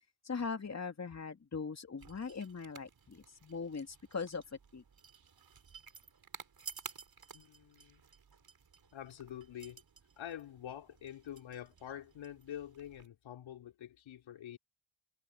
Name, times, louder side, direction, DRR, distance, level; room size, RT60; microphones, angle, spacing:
voice 1, 0.2-4.4 4.7-4.8, left 5 dB, 35° left, 2.9 m, -40 dB
sound 1, 2.0-13.1, right 5 dB, 45° right, 4.6 m, -54 dB
voice 2, 7.3-8.0 8.9-9.8 10.2-14.6, left 10 dB, 70° left, 4.7 m, -47 dB
hypercardioid pair, 50°, 48 cm